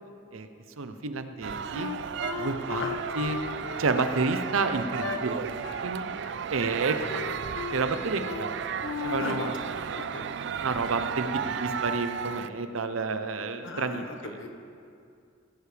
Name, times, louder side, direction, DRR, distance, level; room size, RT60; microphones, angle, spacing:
voice 1, 0.8-1.9 2.4-3.4 3.8-6.0 6.5-7.5 7.7-9.7 10.6-14.4, right 3 dB, 90° right, 8 dB, 0.8 m, -30 dB
sound 1, 1.4-12.5, right 7 dB, 60° right, 0.3 m, -34 dB
Wind instrument woodwind instrument, 1.7-5.2 5.6-5.9 6.1-6.8 7.1-7.9 8.2-8.5 8.8-9.5, left 6 dB, 85° left, 1.0 m, -36 dB
voice 2, 9.2-10.2 13.6-14.0 14.4-14.5, left 2 dB, 65° left, 4 dB, 1.2 m, -37 dB
17.0 x 11.5 x 3.4 m, 2.4 s
head